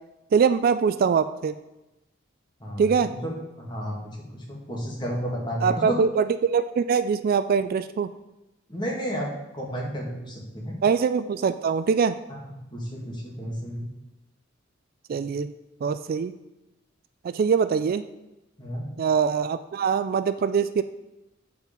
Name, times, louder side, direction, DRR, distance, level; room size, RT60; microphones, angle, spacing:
voice 1, 0.3-1.5 2.8-3.1 5.6-8.1 10.8-12.1 15.1-15.5 15.8-16.3 17.2-18.0 19.0-20.8, right 6 dB, 50° right, 12 dB, 0.3 m, -23 dB
voice 2, 2.6-3.3 3.6-3.9 4.3-6.0 8.7-9.3 9.5-10.8 12.7-13.9 18.6-18.9, equal, 25° left, -2 dB, 2.1 m, -32 dB
7.9 x 4.9 x 5.2 m, 0.96 s
head